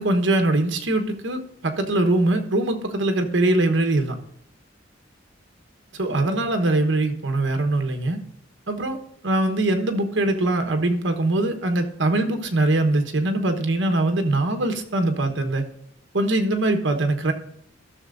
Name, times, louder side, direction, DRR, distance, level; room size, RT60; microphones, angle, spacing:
voice 1, 0.0-4.2 5.9-8.2 8.7-9.0 9.2-15.6 16.1-17.3, right 2 dB, 70° right, 6 dB, 1.1 m, -22 dB
14.0 x 6.8 x 2.6 m, 0.72 s
head